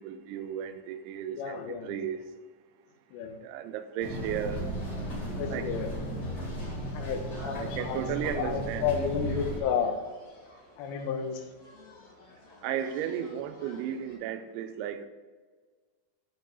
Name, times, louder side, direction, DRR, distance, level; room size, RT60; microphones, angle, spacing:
voice 1, 0.0-2.2 3.4-4.6 5.5-5.7 7.4-8.9 12.6-15.1, right 9 dB, 80° right, 9 dB, 2.8 m, -34 dB
voice 2, 1.3-2.0 3.1-3.4 5.4-5.9 6.9-8.1 8.3-10.0 10.8-11.4, left 7 dB, 75° left, 3 dB, 2.8 m, -31 dB
sound 1, 4.0-9.6, right 1 dB, 30° left, 2.0 m, -35 dB
sound 2, 4.2-14.2, left 2 dB, 60° left, 4.9 m, -54 dB
10.0 x 4.8 x 5.4 m, 1.4 s
omnidirectional pair, 5.7 m